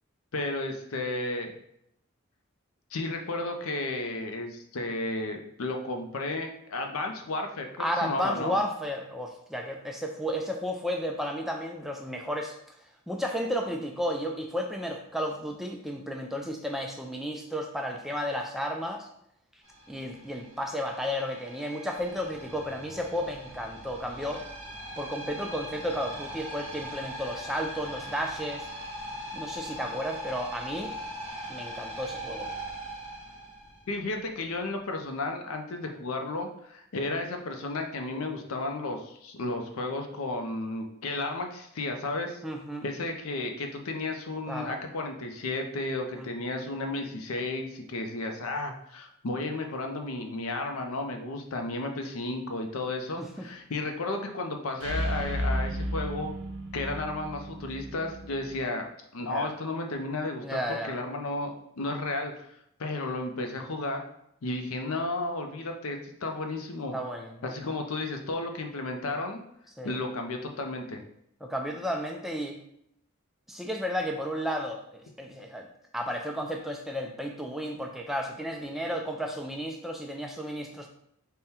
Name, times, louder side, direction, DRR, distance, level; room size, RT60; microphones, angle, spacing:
voice 1, 0.3-1.6 2.9-7.7 8.0-8.6 33.9-42.4 42.8-56.3 56.7-58.9 59.1-62.5 62.8-64.0 64.4-67.0 67.4-69.4 69.8-71.0, left 2 dB, 75° left, 4 dB, 0.5 m, -33 dB
voice 2, 7.8-12.6 13.1-19.1 19.9-24.4 25.0-28.7 29.3-30.9 31.5-32.5 42.4-42.9 44.5-44.7 46.1-46.3 53.2-53.5 59.2-59.5 60.4-61.0 66.9-67.5 69.8-70.0 71.4-72.6 73.5-75.7 75.9-80.9, equal, ahead, 1 dB, 0.3 m, -33 dB
sound 1, 19.6-34.2, right 1 dB, 25° right, 0.7 m, -41 dB
sound 2, 54.8-58.6, equal, 55° right, 0.5 m, -33 dB
3.6 x 2.2 x 4.2 m, 0.76 s
head